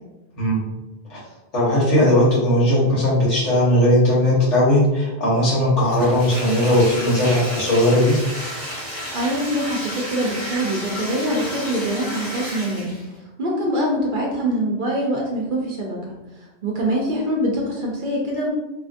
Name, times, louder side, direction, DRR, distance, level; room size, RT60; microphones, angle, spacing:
voice 1, 0.4-0.7 1.1-1.2 1.5-8.1, left 1 dB, 75° left, -7 dB, 1.5 m, -18 dB
Bathtub (filling or washing), 5.9-13.1, equal, 55° left, 1.4 m, -32 dB
voice 2, 9.1-13.0 13.4-16.0 16.6-18.5, right 1 dB, 55° right, -2 dB, 0.6 m, -24 dB
2.8 x 2.4 x 2.5 m, 1.0 s
omnidirectional pair, 1.2 m